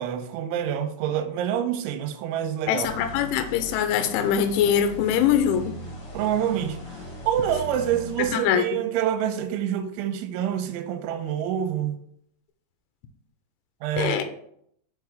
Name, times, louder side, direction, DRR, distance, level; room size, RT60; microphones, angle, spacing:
voice 1, 0.0-2.9 6.1-12.0 13.8-14.2, right 10 dB, 85° right, 3.1 m, -27 dB
voice 2, 2.7-5.8 8.2-8.8 14.0-14.2, left 9 dB, 85° left, 3.0 m, -23 dB
sound 1, 2.8-8.3, equal, 45° left, 1.5 m, -38 dB
6.7 x 4.8 x 4.8 m
omnidirectional pair, 5.5 m